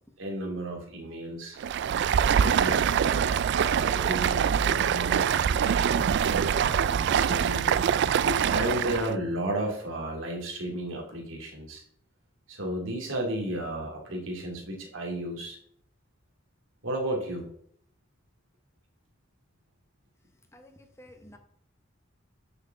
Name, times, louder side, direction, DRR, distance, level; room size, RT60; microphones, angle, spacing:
voice 1, 0.2-1.6 2.4-7.9 8.1-11.8 12.5-15.6 16.8-17.5, right 1 dB, 80° right, 0 dB, 2.4 m, -33 dB
Stream, 1.6-9.1, right 8 dB, 60° right, 0.3 m, -24 dB
voice 2, 20.5-21.4, left 1 dB, 15° left, 5 dB, 0.9 m, -52 dB
6.6 x 4.8 x 6.9 m, 0.63 s
head